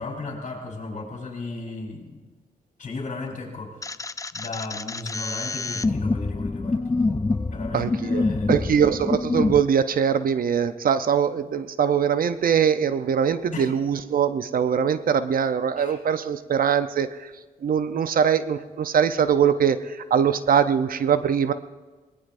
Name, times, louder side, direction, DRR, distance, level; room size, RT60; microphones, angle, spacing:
voice 1, 0.0-2.2 2.8-7.0 7.5-8.8 13.5-13.7 15.8-16.0, left 3 dB, 55° left, -1 dB, 4.4 m, -35 dB
sound 1, 3.8-9.6, left 3 dB, 20° left, 0.5 m, -26 dB
voice 2, 7.7-17.3 17.6-21.5, right 7 dB, 65° right, 11 dB, 0.8 m, -22 dB
23.0 x 19.5 x 2.7 m, 1.3 s
cardioid pair, 65°, 16 cm